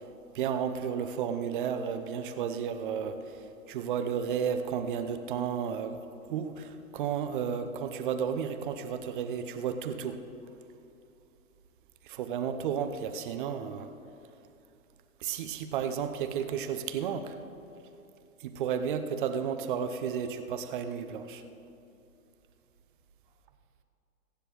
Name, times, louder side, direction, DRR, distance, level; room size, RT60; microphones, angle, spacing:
voice 1, 0.3-3.2 3.7-6.0 6.3-10.2 12.1-13.9 15.2-17.4 18.4-21.4, right 7 dB, 35° right, 9 dB, 0.8 m, -32 dB
22.5 x 9.6 x 3.1 m, 2.7 s
figure-of-eight pair, 120°, 43 cm